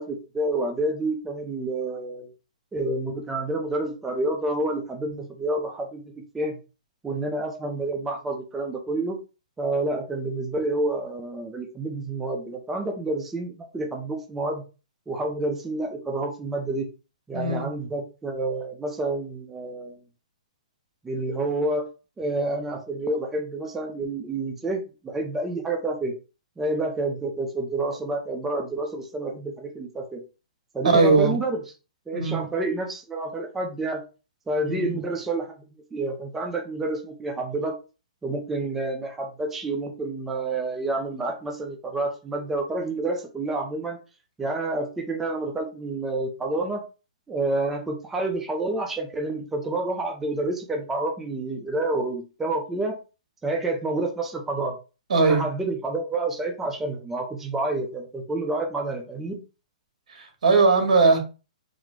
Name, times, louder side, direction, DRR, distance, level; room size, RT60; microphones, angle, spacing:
voice 1, 0.0-2.3 2.7-6.0 6.3-6.6 7.0-9.2 9.6-14.6 15.1-16.9 17.3-20.0 21.0-21.9 22.2-26.1 26.6-30.2 30.7-31.6 32.1-34.0 34.5-35.5 35.9-37.7 38.2-44.0 44.4-46.8 47.3-53.0 53.4-54.8 55.2-59.4, right 2 dB, 5° right, 0.5 m, -29 dB
voice 2, 17.3-17.7 30.8-31.3 32.1-32.5 34.6-35.0 55.1-55.4 60.1-61.2, right 4 dB, 70° right, 1.9 m, -19 dB
4.1 x 2.1 x 4.5 m
hypercardioid pair, 165°, 4 cm